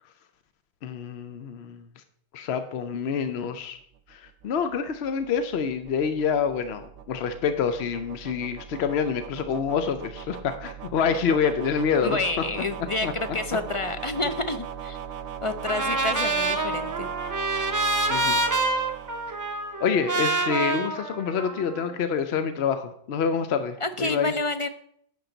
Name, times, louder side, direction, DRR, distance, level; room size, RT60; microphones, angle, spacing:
voice 1, 0.8-1.8 2.3-3.8 4.1-12.2 13.0-13.1 17.5-17.7 18.1-18.4 19.8-24.3, left 6 dB, 70° left, 9 dB, 0.9 m, -27 dB
sound 1, 4.0-20.1, right 8 dB, 75° right, 0.9 m, -39 dB
voice 2, 12.0-15.0 15.4-17.1 23.8-24.7, left 2 dB, 45° left, 9 dB, 0.4 m, -29 dB
Trumpet, 15.7-21.9, right 2 dB, 20° right, 0.7 m, -27 dB
10.0 x 7.1 x 3.9 m, 0.67 s
omnidirectional pair, 1.1 m